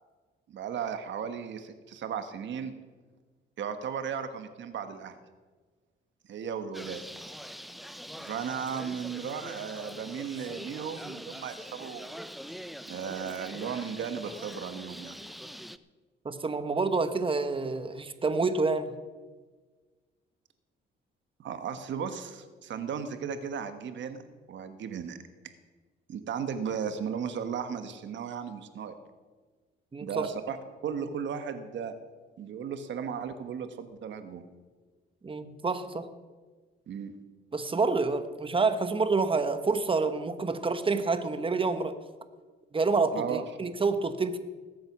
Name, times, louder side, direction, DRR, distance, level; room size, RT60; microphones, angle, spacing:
voice 1, 0.5-2.7 3.6-5.2 6.3-7.1 8.2-12.2 12.9-15.1 21.4-25.2 26.1-28.9 30.0-30.6 30.8-31.9 32.4-34.4 36.9-37.1 43.1-43.4, right 7 dB, 65° right, 9 dB, 1.3 m, -35 dB
Bird, 6.7-15.8, equal, ahead, 0.5 m, -43 dB
voice 2, 16.2-18.9 29.9-30.3 35.2-36.1 37.5-41.9 42.7-44.4, right 4 dB, 25° right, 10 dB, 1.2 m, -28 dB
19.0 x 7.8 x 6.1 m, 1.4 s
cardioid pair, 90°, 20 cm